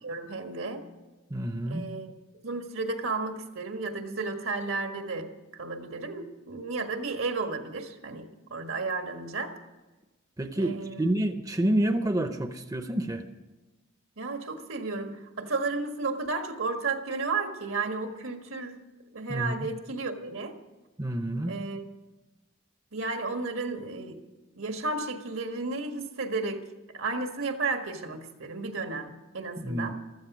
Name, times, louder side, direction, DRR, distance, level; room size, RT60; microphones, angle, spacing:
voice 1, 0.0-0.8 1.7-2.1 2.4-9.5 10.6-11.1 14.2-18.8 19.1-20.5 21.5-21.8 22.9-24.2 24.5-26.6 26.9-29.9, right 3 dB, 80° right, 5 dB, 1.6 m, -33 dB
voice 2, 1.3-1.9 10.4-13.2 19.3-19.7 21.0-21.6 29.6-29.9, right 1 dB, 15° right, 8 dB, 0.6 m, -28 dB
14.5 x 13.5 x 6.1 m, 1.2 s
head